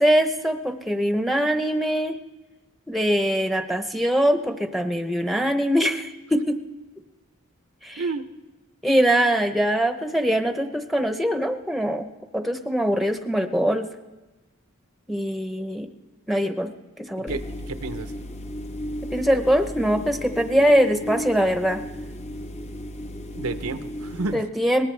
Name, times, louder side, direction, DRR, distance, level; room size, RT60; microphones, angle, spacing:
voice 1, 0.0-2.2 2.9-6.6 7.8-8.0 8.8-12.1 12.3-13.9 15.1-15.9 16.3-16.7 17.0-17.4 19.1-21.8 24.3-24.9, equal, ahead, 6 dB, 0.8 m, -22 dB
sound 1, 17.3-24.4, equal, 30° left, 0.7 m, -34 dB
voice 2, 17.3-18.1 23.3-24.4, right 3 dB, 75° right, 10 dB, 0.7 m, -30 dB
21.5 x 19.0 x 3.3 m, 1.1 s
head